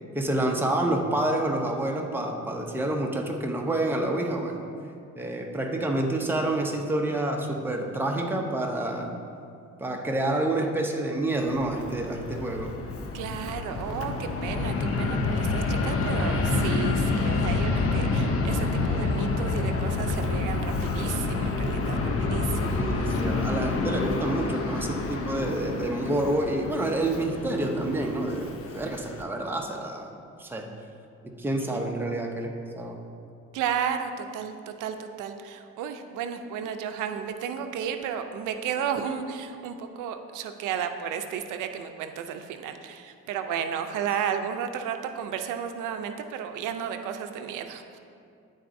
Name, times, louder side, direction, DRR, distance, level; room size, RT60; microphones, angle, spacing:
voice 1, 0.1-4.6 5.2-9.1 9.8-12.8 22.7-30.1 30.4-30.7 31.2-33.0, right 1 dB, 5° right, 1 dB, 0.7 m, -28 dB
Fixed-wing aircraft airplane, 11.4-29.2, left 3 dB, 50° left, 0.6 m, -28 dB
voice 2, 13.1-22.0 22.3-23.1 31.7-31.9 33.5-48.0, right 8 dB, 90° right, 7 dB, 0.5 m, -33 dB
10.0 x 4.0 x 2.6 m, 2.5 s
cardioid pair, 90°, 30 cm